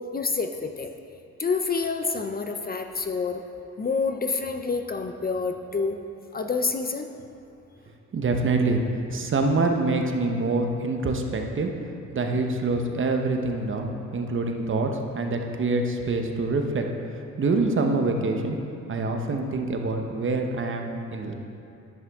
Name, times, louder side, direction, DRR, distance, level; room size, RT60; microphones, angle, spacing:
voice 1, 0.1-0.9 1.4-3.5 3.8-6.0 6.3-7.1, left 4 dB, 30° left, 5 dB, 0.6 m, -28 dB
voice 2, 8.1-8.8 9.1-11.7 12.1-16.9 17.4-18.6 18.9-21.3, right 3 dB, 40° right, 3 dB, 1.0 m, -25 dB
10.5 x 8.5 x 3.6 m, 2.6 s
cardioid pair, 90°, 30 cm